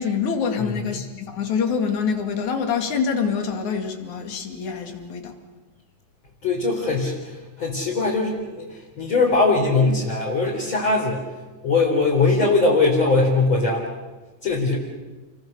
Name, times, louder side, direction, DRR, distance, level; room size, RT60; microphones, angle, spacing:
voice 1, 0.0-5.3, left 6 dB, 80° left, 6 dB, 3.6 m, -25 dB
voice 2, 0.6-1.0 6.4-11.2 11.6-13.8 14.4-14.8, left 3 dB, 40° left, -5 dB, 4.7 m, -21 dB
29.5 x 23.0 x 6.7 m, 1.2 s
omnidirectional pair, 3.3 m